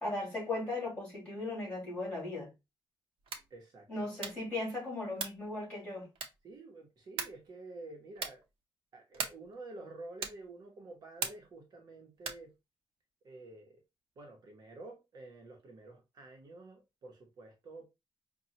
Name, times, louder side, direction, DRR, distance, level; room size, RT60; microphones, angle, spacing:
voice 1, 0.0-2.5 3.9-6.1, left 2 dB, 15° left, 2.7 m, -37 dB
sound 1, 3.2-3.6 4.2-4.5 5.1-5.5 6.2-6.6 7.2-7.5 8.1-8.5 9.1-9.5 10.2-10.5 11.2-11.6 12.2-12.5, right 6 dB, 80° right, 0.8 m, -40 dB
voice 2, 3.5-4.1 6.4-8.4 8.9-12.5 13.2-13.8 14.2-17.8, right 2 dB, 45° right, 0.9 m, -50 dB
5.2 x 2.3 x 2.9 m
wide cardioid pair, 175°, 9 cm